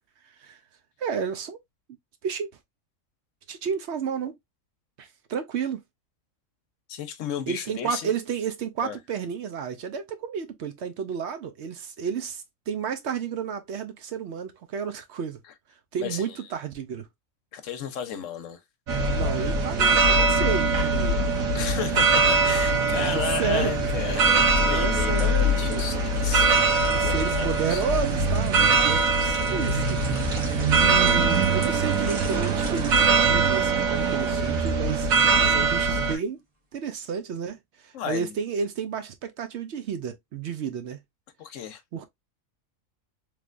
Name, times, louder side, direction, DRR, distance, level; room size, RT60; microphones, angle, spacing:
voice 1, 1.0-1.6 2.2-2.5 3.5-4.3 5.0-5.8 7.5-15.4 15.9-17.1 19.1-21.2 23.0-23.7 24.7-25.8 26.9-30.0 30.7-35.1 35.4-36.4 36.7-41.0 41.9-42.1, right 7 dB, 65° right, 0.8 m, -31 dB
voice 2, 6.9-8.1 8.8-9.0 16.0-16.4 17.5-18.6 21.5-27.8 36.1-36.2 37.9-38.4 41.4-41.8, left 8 dB, 70° left, 1.0 m, -33 dB
sound 1, 18.9-36.1, right 3 dB, 80° right, 1.3 m, -22 dB
sound 2, 24.8-34.8 35.2-35.4, right 2 dB, 30° right, 1.2 m, -42 dB
3.3 x 3.2 x 2.4 m
omnidirectional pair, 1.4 m